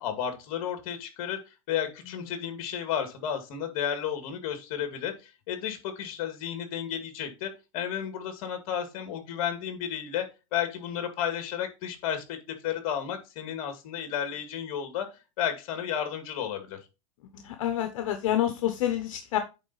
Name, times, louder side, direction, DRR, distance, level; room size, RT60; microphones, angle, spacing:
voice 1, 0.0-12.4 12.6-16.8, left 9 dB, 45° left, 7 dB, 2.1 m, -33 dB
voice 2, 17.3-19.4, left 12 dB, 65° left, 7 dB, 1.1 m, -28 dB
9.0 x 4.0 x 4.1 m, 0.28 s
supercardioid pair, 150°, 18 cm